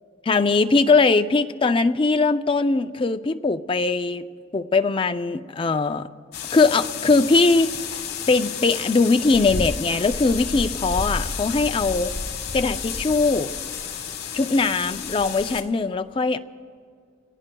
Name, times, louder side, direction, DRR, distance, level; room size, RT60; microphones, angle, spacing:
voice 1, 0.3-4.2 4.5-6.1 6.5-7.8 8.3-12.1 12.5-13.5 14.3-16.4, left 3 dB, 30° left, 9 dB, 0.4 m, -20 dB
sound 1, 6.3-15.6, left 5 dB, 55° left, 1.5 m, -31 dB
29.5 x 18.0 x 2.3 m, 2.2 s
head